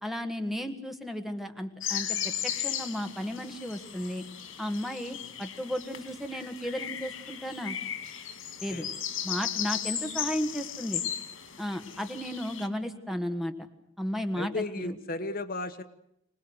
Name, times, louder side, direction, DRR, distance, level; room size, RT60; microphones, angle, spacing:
voice 1, 0.0-4.2 4.6-7.8 8.6-8.9 9.2-11.0 11.6-13.5 14.0-15.0, equal, ahead, 6 dB, 1.6 m, -34 dB
sound 1, 1.8-12.7, left 9 dB, 85° left, 2.8 m, -36 dB
voice 2, 14.3-15.8, left 2 dB, 45° left, 9 dB, 1.3 m, -34 dB
26.0 x 19.5 x 8.0 m, 0.80 s
head